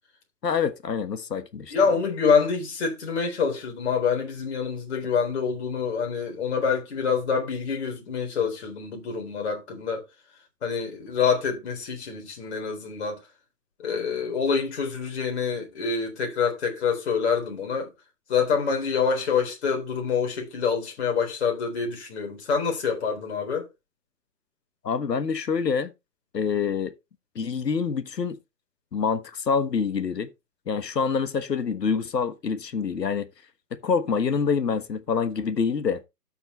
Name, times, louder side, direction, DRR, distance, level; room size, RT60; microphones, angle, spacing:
voice 1, 0.4-1.7 24.8-25.9 26.3-26.9 27.3-28.4 28.9-30.3 30.7-33.3 33.7-36.0, left 6 dB, 80° left, 1.6 m, -26 dB
voice 2, 1.7-10.0 10.6-13.2 13.8-17.9 18.3-23.7, left 6 dB, 40° left, 3.9 m, -26 dB
13.0 x 5.9 x 3.2 m
hypercardioid pair, 165°, 49 cm